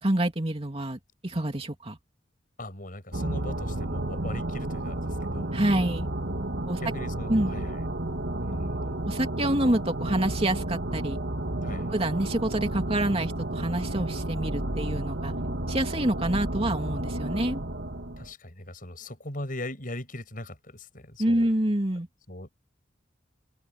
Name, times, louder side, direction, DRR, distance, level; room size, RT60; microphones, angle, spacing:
voice 1, 0.0-2.0 5.5-6.1 6.7-6.8 7.3-7.6 9.1-11.2 11.9-15.3 15.7-17.6 21.2-22.1, right 1 dB, 30° right, 2.8 m, -27 dB
voice 2, 2.6-5.5 6.8-7.9 8.4-9.0 11.6-11.9 18.2-21.5 22.3-22.5, left 1 dB, 50° left, 7.6 m, -40 dB
sound 1, 3.1-18.3, right 1 dB, 80° right, 2.5 m, -32 dB
open air
head